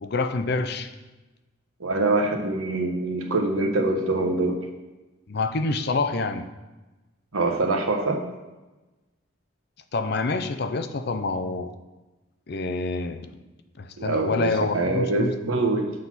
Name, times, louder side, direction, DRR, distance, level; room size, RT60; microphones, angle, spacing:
voice 1, 0.0-0.9 5.3-6.5 9.9-11.7 12.5-13.3 13.8-15.6, left 3 dB, 50° left, 9 dB, 0.5 m, -27 dB
voice 2, 1.8-4.5 7.3-8.2 14.0-15.9, right 2 dB, 85° right, 3 dB, 1.1 m, -24 dB
7.5 x 4.0 x 5.9 m, 1.1 s
head